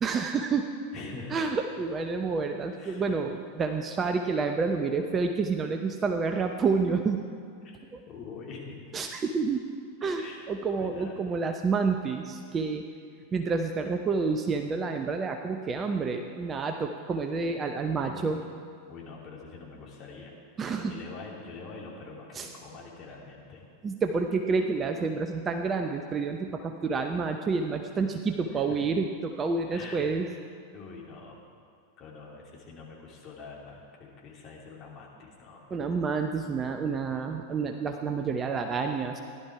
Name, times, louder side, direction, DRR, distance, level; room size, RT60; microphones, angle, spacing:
voice 1, 0.0-0.7 1.3-7.2 7.9-8.0 8.9-9.6 10.0-12.8 13.3-18.4 20.6-20.9 22.3-22.5 23.8-30.3 35.7-39.2, right 4 dB, 20° right, 5 dB, 0.7 m, -29 dB
voice 2, 0.9-1.3 2.7-3.0 7.6-7.8 8.1-8.8 10.2-10.4 10.8-11.1 17.7-18.5 18.9-20.3 20.7-23.7 26.5-26.6 28.5-28.8 29.7-30.1 30.7-31.4 32.0-35.6, left 4 dB, 30° left, -3 dB, 3.0 m, -44 dB
15.5 x 11.5 x 4.8 m, 2.2 s
figure-of-eight pair, 90°, 0 cm